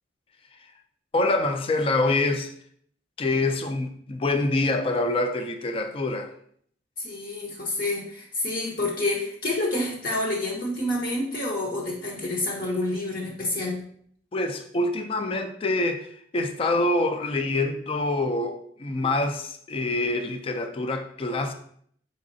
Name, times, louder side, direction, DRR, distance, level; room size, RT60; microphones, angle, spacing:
voice 1, 1.1-2.5 3.2-6.3 14.3-21.5, left 2 dB, 30° left, 6 dB, 0.4 m, -26 dB
voice 2, 7.0-13.8, left 2 dB, 50° left, -2 dB, 0.8 m, -28 dB
4.1 x 3.6 x 2.6 m, 0.63 s
head